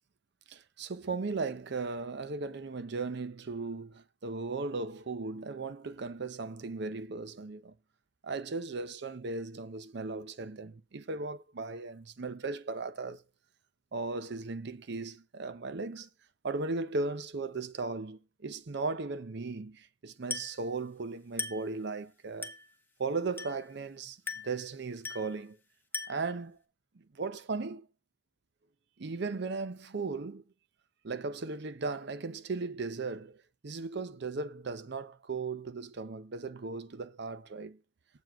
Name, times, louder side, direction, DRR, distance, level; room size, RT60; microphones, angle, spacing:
voice 1, 0.5-7.7 8.2-13.2 13.9-16.1 16.4-22.5 23.0-25.6 26.1-26.6 27.0-27.9 29.0-30.4 31.0-37.8, right 3 dB, 60° right, 0.6 m, -37 dB
Glass, 20.3-20.6 21.4-21.7 22.4-22.7 23.4-23.7 24.3-24.6 25.0-25.4 25.9-26.3, left 4 dB, 10° left, 1.0 m, -39 dB
7.7 x 7.2 x 4.4 m
head